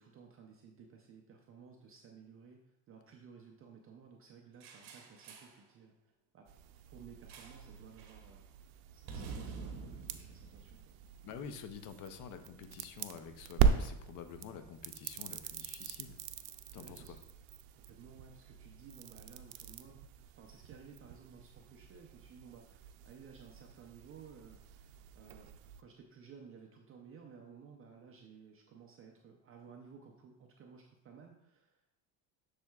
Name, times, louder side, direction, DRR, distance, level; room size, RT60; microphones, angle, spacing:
voice 1, 0.0-5.9 6.3-6.5 6.9-8.4 8.9-10.9 16.8-17.1 17.7-20.0 20.4-25.5 25.8-32.0, right 6 dB, 30° right, 2 dB, 0.5 m, -56 dB
sound 1, 4.6-5.6 7.3-7.7 8.0-8.3 9.1-11.4, right 5 dB, 65° right, 1.2 m, -47 dB
sound 2, 6.5-25.8, right 7 dB, 80° right, 0.6 m, -40 dB
voice 2, 11.2-16.2 16.7-17.2, left 7 dB, 45° left, 9 dB, 0.6 m, -48 dB
7.4 x 6.5 x 2.3 m, 0.83 s
cardioid pair, 150°, 44 cm